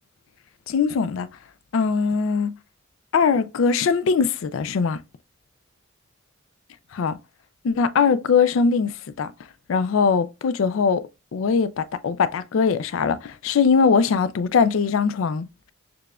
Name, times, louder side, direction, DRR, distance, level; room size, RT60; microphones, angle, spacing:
voice 1, 0.7-1.3 1.7-2.5 3.1-5.0 6.9-7.2 7.6-8.9 9.2-9.3 9.7-11.0 11.3-15.7, left 5 dB, 75° left, 0.4 m, -21 dB
6.6 x 2.4 x 2.2 m
head